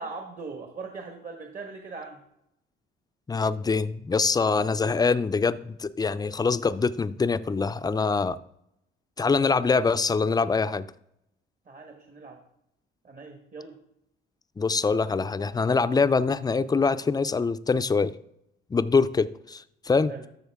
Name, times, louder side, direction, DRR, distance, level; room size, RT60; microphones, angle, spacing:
voice 1, 0.0-2.2 11.6-12.4 13.0-13.8 20.1-20.2, right 4 dB, 40° right, 3 dB, 1.4 m, -40 dB
voice 2, 3.3-8.4 9.2-10.9 14.6-18.1 18.7-20.1, left 4 dB, 20° left, 14 dB, 0.4 m, -24 dB
12.5 x 6.4 x 3.6 m, 0.78 s
cardioid pair, 90°, 20 cm